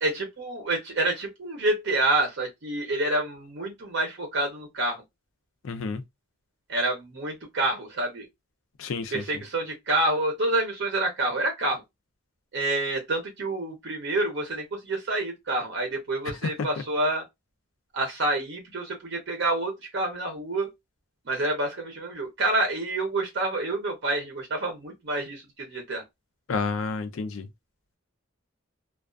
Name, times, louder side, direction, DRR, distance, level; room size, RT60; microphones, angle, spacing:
voice 1, 0.0-5.0 6.7-8.3 9.1-11.8 12.5-17.2 17.9-20.7 21.3-26.0, right 2 dB, 60° right, 0.6 m, -28 dB
voice 2, 5.6-6.0 8.8-9.2 26.5-27.5, left 4 dB, 70° left, 0.4 m, -30 dB
2.3 x 2.3 x 2.3 m
head